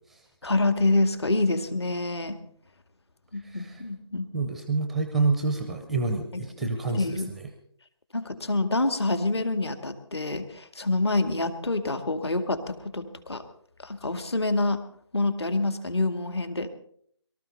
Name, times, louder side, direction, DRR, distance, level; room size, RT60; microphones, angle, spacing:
voice 1, 0.4-2.4 3.3-4.3 7.0-7.3 8.1-13.4 13.8-14.8 15.1-16.7, left 2 dB, 60° left, 8 dB, 2.1 m, -26 dB
voice 2, 3.4-3.8 4.3-7.5, right 3 dB, ahead, 6 dB, 0.5 m, -28 dB
23.0 x 13.5 x 4.1 m, 0.64 s
figure-of-eight pair, 155°, 15 cm